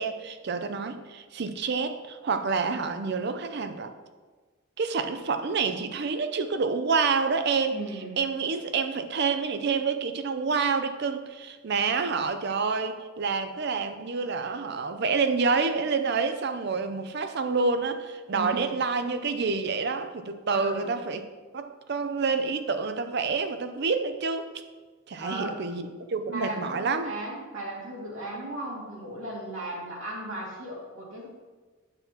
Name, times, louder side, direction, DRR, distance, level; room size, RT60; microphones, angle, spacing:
voice 1, 0.0-3.9 4.8-7.8 8.2-21.2 21.5-24.5 25.1-27.1, right 4 dB, 55° right, 9 dB, 0.5 m, -28 dB
voice 2, 7.7-8.2 18.3-18.7 20.5-20.9 25.2-25.6 26.3-31.3, right 1 dB, 80° right, -4 dB, 2.2 m, -36 dB
9.0 x 7.4 x 2.9 m, 1.4 s
head